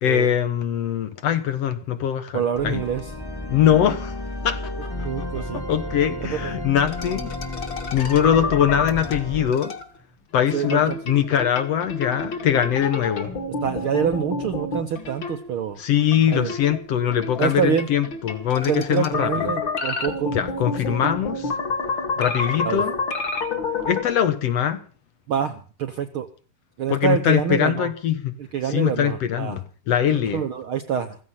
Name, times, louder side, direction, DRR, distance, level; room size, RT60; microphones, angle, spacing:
voice 1, 0.0-2.8 3.5-4.2 4.4-4.9 5.2-7.3 7.9-9.7 10.3-13.3 15.8-19.5 20.3-21.5 22.2-22.9 23.9-24.8 26.9-28.3 28.7-30.4, left 9 dB, 60° left, 1.9 m, -22 dB
voice 2, 2.3-3.0 5.0-5.6 6.2-6.5 10.5-11.0 13.6-15.8 16.3-16.5 17.4-17.9 18.7-20.4 20.9-21.0 22.6-22.8 25.3-26.3 26.8-27.9 28.5-29.6 30.3-31.2, right 8 dB, 65° right, 1.3 m, -26 dB
sound 1, 2.5-9.5, left 1 dB, 10° left, 1.2 m, -33 dB
sound 2, 6.9-9.9 10.4-15.7 16.1-24.0, left 3 dB, 40° left, 2.5 m, -29 dB
16.0 x 15.0 x 5.7 m
omnidirectional pair, 3.7 m